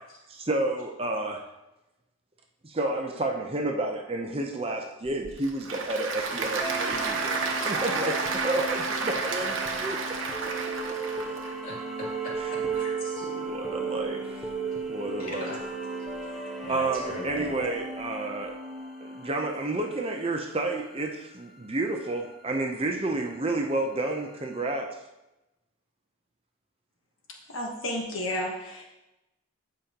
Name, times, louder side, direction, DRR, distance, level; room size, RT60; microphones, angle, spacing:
voice 1, 0.3-1.4 2.6-10.0 10.5-11.0 12.4-12.5 13.3-14.5 14.9-15.6 16.7-18.6 19.0-24.9, right 2 dB, 25° right, 2 dB, 0.6 m, -30 dB
Applause / Crowd, 5.1-11.5, right 4 dB, 65° right, 1.0 m, -31 dB
sound 1, 6.6-20.7, right 4 dB, ahead, 1.0 m, -35 dB
voice 2, 11.6-13.2 15.2-15.6 16.6-17.5, left 1 dB, 40° left, -6 dB, 2.9 m, -40 dB
voice 3, 27.3-28.9, left 1 dB, 70° left, 0 dB, 1.2 m, -32 dB
15.0 x 5.2 x 2.9 m, 0.98 s
head